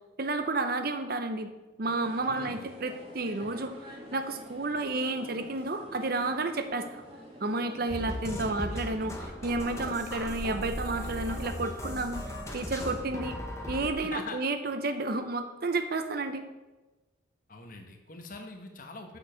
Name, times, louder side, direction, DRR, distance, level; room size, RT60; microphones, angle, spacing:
voice 1, 0.2-1.5 1.8-3.7 4.1-7.0 7.4-12.2 12.5-13.4 13.7-16.4, right 2 dB, 50° right, 9 dB, 0.7 m, -31 dB
sound 1, 1.8-11.6, equal, 30° right, 1.8 m, -49 dB
voice 2, 2.2-2.7 14.0-14.4 17.5-19.2, left 3 dB, 40° left, 4 dB, 1.1 m, -43 dB
sound 2, 7.9-13.9, left 1 dB, 15° left, 1.0 m, -37 dB
7.1 x 6.9 x 5.6 m, 1.2 s
head